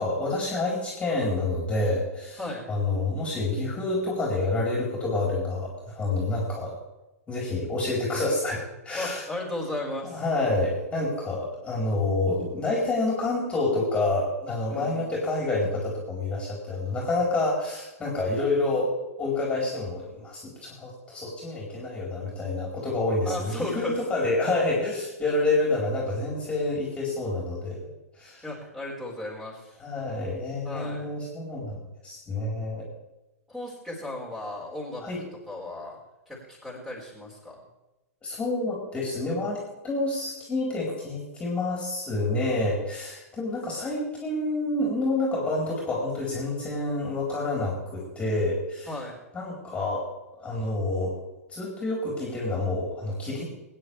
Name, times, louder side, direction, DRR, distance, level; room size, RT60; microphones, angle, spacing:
voice 1, 0.0-2.4 2.7-6.8 7.3-9.2 10.1-18.9 19.2-27.8 28.1-28.4 29.8-32.9 35.0-35.2 38.2-48.9 49.3-50.1 50.4-51.2 51.5-53.4, left 2 dB, 15° left, -3 dB, 4.2 m, -28 dB
voice 2, 8.9-10.2 14.7-15.1 23.2-24.3 28.4-29.8 30.6-31.1 33.5-36.0 36.3-37.6 48.9-49.2, left 1 dB, 5° right, -4 dB, 4.9 m, -35 dB
23.0 x 9.9 x 3.4 m, 0.99 s
figure-of-eight pair, 105°, 8 cm